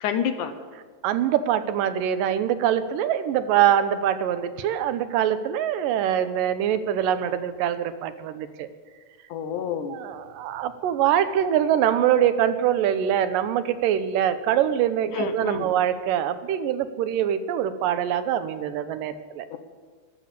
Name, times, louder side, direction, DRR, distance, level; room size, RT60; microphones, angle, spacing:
voice 1, 0.0-0.5 9.3-10.0 15.1-15.7 19.5-19.6, left 8 dB, 75° left, 9 dB, 2.2 m, -28 dB
voice 2, 1.0-8.7 9.9-19.5, right 10 dB, 90° right, 11 dB, 2.4 m, -24 dB
13.5 x 13.0 x 6.7 m, 1.5 s
omnidirectional pair, 3.8 m